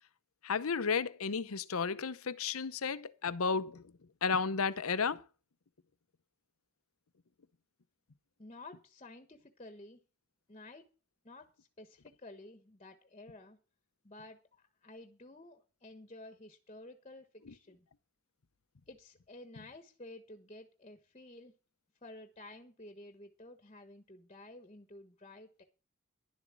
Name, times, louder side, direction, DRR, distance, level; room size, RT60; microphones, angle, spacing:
voice 1, 0.4-3.9 4.2-5.2 17.5-17.6, left 5 dB, 90° left, 0.8 m, -33 dB
voice 2, 8.4-10.0 10.5-10.8 11.2-13.6 14.0-17.9 18.9-21.5 22.0-25.6, left 2 dB, 30° left, 1.2 m, -52 dB
11.5 x 7.2 x 7.4 m
head